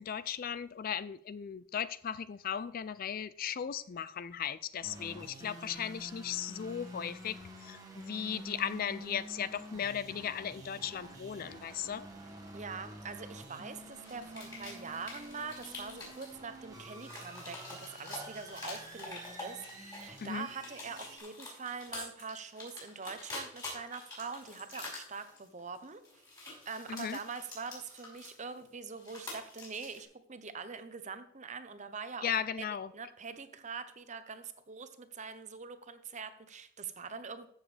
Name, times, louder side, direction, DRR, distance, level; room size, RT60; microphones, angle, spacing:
voice 1, 0.0-7.4 7.6-12.1 20.2-20.5 26.9-27.2 32.2-32.9, left 8 dB, 45° left, 0.3 m, -37 dB
sound 1, 4.8-21.2, right 1 dB, 15° right, 1.6 m, -49 dB
voice 2, 12.5-26.0 26.7-32.3 32.6-37.5, right 5 dB, 35° right, 0.8 m, -44 dB
sound 2, 13.9-16.3 16.8-20.2 20.5-28.7 29.0-30.0, left 2 dB, 20° left, 5.0 m, -46 dB
14.0 x 7.2 x 3.3 m
head